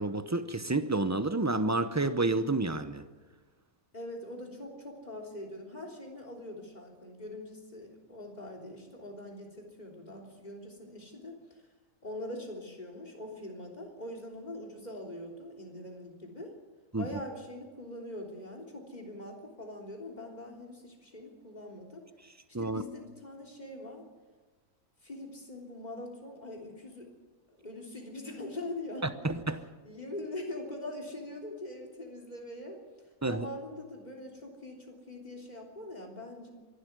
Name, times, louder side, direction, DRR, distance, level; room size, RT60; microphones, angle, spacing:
voice 1, 0.0-3.1 16.9-17.1 22.5-22.8 29.2-29.6 33.2-33.5, right 2 dB, 15° right, 0.6 m, -29 dB
voice 2, 3.9-11.4 12.0-16.5 17.0-22.1 22.6-24.0 25.0-27.1 27.5-29.1 29.8-32.8 33.2-36.5, left 1 dB, 25° left, 3.5 m, -43 dB
25.0 x 12.0 x 9.4 m
omnidirectional pair, 1.6 m